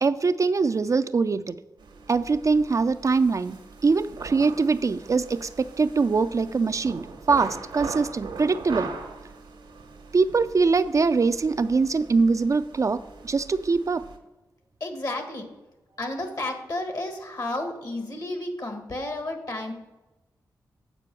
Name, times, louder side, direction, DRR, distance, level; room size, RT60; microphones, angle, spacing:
voice 1, 0.0-1.6 2.1-8.9 10.1-14.1, right 4 dB, 45° right, 11 dB, 0.4 m, -23 dB
sound 1, 1.8-14.2, right 4 dB, 85° right, 1.2 m, -41 dB
voice 2, 14.8-15.5 16.0-19.7, left 2 dB, 55° left, 5 dB, 1.5 m, -32 dB
8.3 x 4.5 x 6.8 m, 1.0 s
cardioid pair, 45°, 8 cm